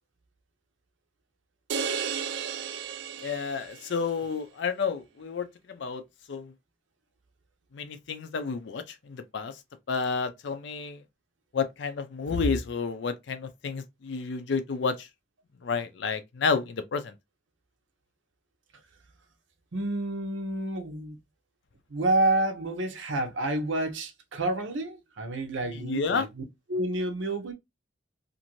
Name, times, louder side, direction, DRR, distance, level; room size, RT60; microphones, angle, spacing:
sound 1, 1.7-4.0, right 7 dB, 65° right, 0.3 m, -33 dB
voice 1, 3.2-6.0 6.3-6.5 7.7-9.5 9.9-11.0 11.5-15.1 15.6-17.1 25.8-26.3, left 5 dB, 70° left, 0.4 m, -30 dB
voice 2, 19.7-21.2 21.9-26.4 26.7-27.5, right 2 dB, 85° right, 0.7 m, -29 dB
2.6 x 2.5 x 2.9 m
head